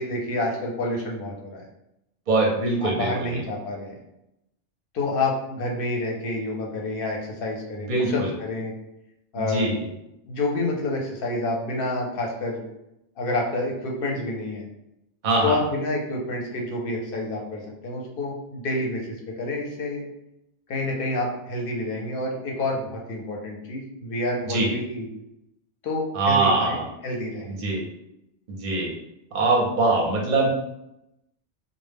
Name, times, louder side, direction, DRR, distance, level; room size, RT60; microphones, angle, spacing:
voice 1, 0.0-1.6 2.8-3.9 4.9-8.7 9.3-9.7 10.3-12.6 13.2-14.6 15.4-19.1 19.4-20.0 20.7-25.1 25.8-26.8 27.0-27.5, left 2 dB, 60° left, -1 dB, 0.7 m, -28 dB
voice 2, 2.3-3.4 7.9-8.3 9.4-9.9 15.2-15.6 24.5-24.7 26.1-26.9 27.6-27.8 28.6-28.9 29.3-30.5, right 2 dB, 55° right, -1 dB, 0.6 m, -22 dB
2.0 x 2.0 x 3.3 m, 0.85 s
omnidirectional pair, 1.2 m